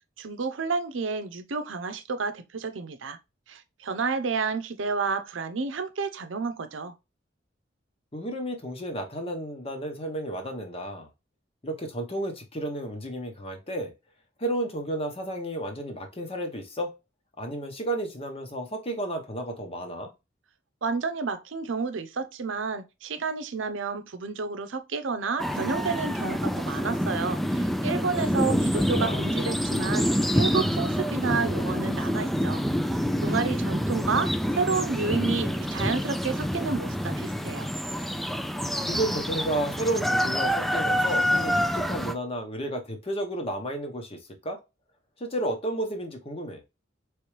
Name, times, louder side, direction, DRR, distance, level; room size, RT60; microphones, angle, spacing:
voice 1, 0.2-3.2 3.5-6.9 20.8-30.1 30.3-32.6 33.2-37.7, right 4 dB, 90° right, 0.7 m, -30 dB
voice 2, 8.1-11.1 11.6-13.9 14.4-17.0 17.4-20.1 28.4-29.3 38.9-44.6 45.2-46.6, right 1 dB, 30° left, 1.0 m, -32 dB
sound 1, 25.4-42.1, equal, ahead, 0.3 m, -27 dB
4.5 x 3.3 x 3.1 m
head